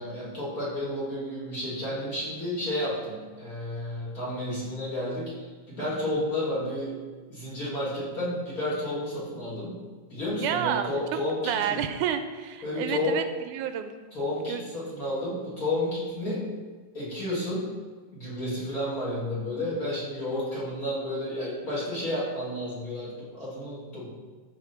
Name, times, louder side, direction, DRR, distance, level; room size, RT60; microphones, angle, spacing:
voice 1, 0.0-7.0 7.3-9.8 10.1-11.8 12.6-13.2 14.1-16.5 16.9-17.7 18.1-24.1, left 1 dB, 30° left, -7 dB, 2.9 m, -31 dB
voice 2, 10.4-13.9 14.5-14.6, right 9 dB, 85° right, 8 dB, 2.0 m, -30 dB
14.0 x 5.0 x 4.4 m, 1.4 s
omnidirectional pair, 3.6 m